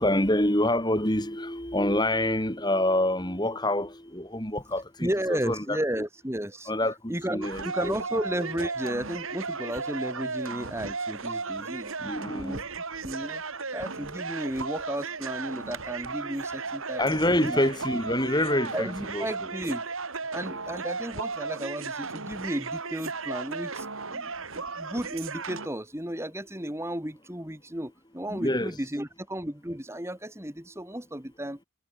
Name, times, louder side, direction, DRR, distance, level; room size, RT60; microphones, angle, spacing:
voice 1, 0.0-5.1 5.5-5.8 6.7-8.0 12.0-12.6 17.0-19.3 28.3-28.7, left 1 dB, 20° left, 5.2 m, -26 dB
voice 2, 5.0-6.7 7.1-12.0 12.3-12.6 13.0-13.4 13.7-17.2 17.5-17.6 18.7-19.9 20.3-31.6, right 1 dB, 10° right, 2.6 m, -33 dB
sound 1, 7.4-25.7, right 4 dB, 70° right, 3.0 m, -35 dB
head